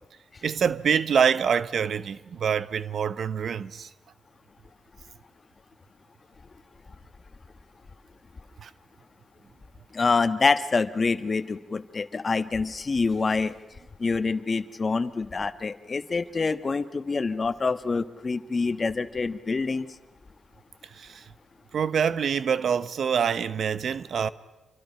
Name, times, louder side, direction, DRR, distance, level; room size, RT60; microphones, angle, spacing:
voice 1, 0.4-3.9 8.6-8.7 21.0-21.2 21.7-24.3, right 7 dB, 65° right, 0.8 m, -25 dB
voice 2, 9.9-13.5 14.0-19.9, left 4 dB, 40° left, 1.2 m, -26 dB
28.0 x 24.5 x 5.7 m
cardioid pair, 60°, 0 cm